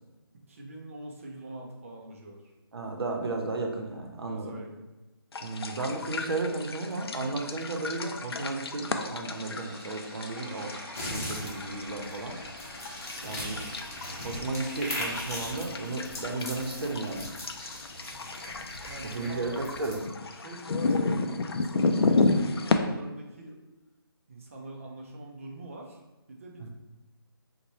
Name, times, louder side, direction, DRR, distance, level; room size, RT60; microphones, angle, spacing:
voice 1, 0.3-2.5 4.2-4.9 11.1-11.4 13.2-13.5 18.5-19.7 20.3-23.6 24.3-26.0 26.3-26.7, right 2 dB, 35° right, 0 dB, 0.5 m, -44 dB
voice 2, 2.7-4.5 5.4-10.7 11.1-12.4 13.2-13.6 14.2-17.3 19.0-20.0 26.6-26.7, right 3 dB, 75° right, 2 dB, 0.7 m, -34 dB
sound 1, 5.3-22.8, left 3 dB, 80° left, 0.4 m, -32 dB
sound 2, 9.2-19.2, equal, 10° right, 0.9 m, -47 dB
sound 3, 10.9-20.0, left 1 dB, 40° left, 0.9 m, -39 dB
3.9 x 2.2 x 3.0 m, 1.1 s
hypercardioid pair, 165°, 13 cm